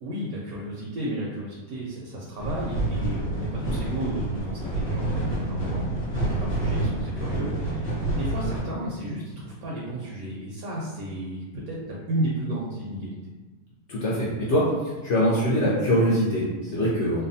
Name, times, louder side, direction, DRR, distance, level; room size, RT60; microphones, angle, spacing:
voice 1, 0.0-5.9 6.3-13.3, right 1 dB, 70° right, -4 dB, 1.0 m, -33 dB
sound 1, 2.4-8.6, right 2 dB, 50° left, 1.1 m, -28 dB
voice 2, 13.9-14.7 15.0-17.3, equal, 65° left, -7 dB, 0.7 m, -23 dB
2.7 x 2.1 x 2.6 m, 1.2 s
omnidirectional pair, 1.7 m